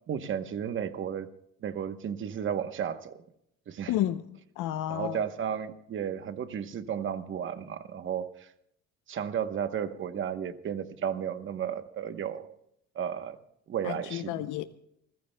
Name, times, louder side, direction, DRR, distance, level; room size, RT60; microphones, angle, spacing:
voice 1, 0.1-1.3 1.6-3.2 3.7-4.0 4.9-8.5 9.1-12.5 12.9-13.4 13.7-14.5, right 8 dB, 40° right, 1.0 m, -33 dB
voice 2, 3.9-5.2 13.8-14.6, left 13 dB, 85° left, 0.8 m, -31 dB
29.5 x 14.5 x 2.3 m
cardioid pair, 160°, 30 cm